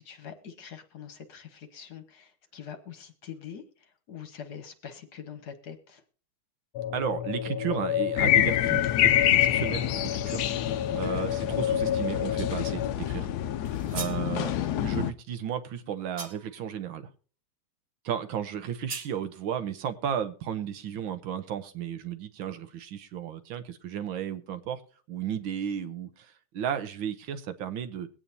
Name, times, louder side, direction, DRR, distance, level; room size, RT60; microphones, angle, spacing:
voice 1, 0.0-6.0 10.9-11.2, left 8 dB, 55° left, 9 dB, 1.5 m, -44 dB
sound 1, 6.7-12.9, left 10 dB, 85° left, 1.5 m, -31 dB
voice 2, 6.9-10.5 10.7-13.3 13.6-17.1 18.0-24.8 25.1-28.1, right 8 dB, 75° right, 10 dB, 1.7 m, -34 dB
sound 2, 8.2-15.1, left 12 dB, 70° left, 0.9 m, -27 dB
sound 3, 13.6-14.3 16.2-16.6 18.9-19.2, right 4 dB, 40° right, 1.6 m, -39 dB
21.5 x 8.8 x 2.7 m, 0.41 s
omnidirectional pair, 2.3 m